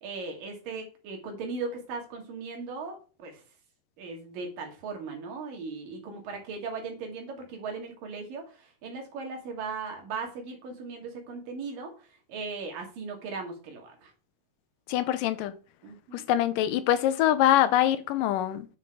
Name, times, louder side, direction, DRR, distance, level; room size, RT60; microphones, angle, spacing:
voice 1, 0.0-3.4 4.0-11.9 12.3-14.1 15.8-16.2, right 4 dB, 90° right, 4.0 m, -38 dB
voice 2, 14.9-15.5 16.1-18.7, left 12 dB, 85° left, 2.4 m, -24 dB
9.8 x 5.9 x 4.6 m
omnidirectional pair, 3.8 m